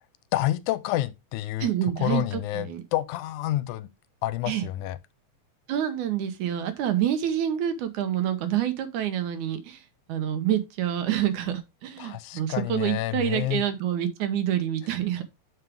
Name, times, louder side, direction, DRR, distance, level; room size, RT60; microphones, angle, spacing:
voice 1, 0.3-1.7 2.0-3.9 4.2-5.0 12.0-13.6, left 15 dB, 85° left, 2.1 m, -28 dB
voice 2, 1.6-2.8 4.5-4.7 5.7-9.8 10.1-15.2, right 10 dB, 80° right, 2.4 m, -27 dB
7.3 x 5.9 x 3.5 m
omnidirectional pair, 3.5 m